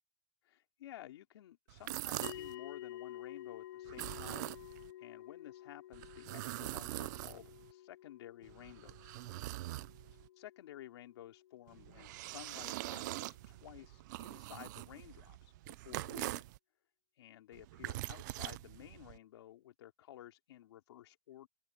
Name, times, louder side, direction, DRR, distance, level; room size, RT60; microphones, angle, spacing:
voice 1, 0.4-4.5 5.0-9.1 10.4-16.5 17.1-21.5, left 13 dB, 70° left, 3.5 m, -54 dB
sound 1, 1.7-2.5 3.8-4.9 5.9-7.7 8.4-10.3 11.7-16.6 17.5-19.2, right 18 dB, 45° right, 0.5 m, -43 dB
sound 2, 2.2-12.8, left 13 dB, 50° left, 0.8 m, -51 dB
open air
supercardioid pair, 165°, 14 cm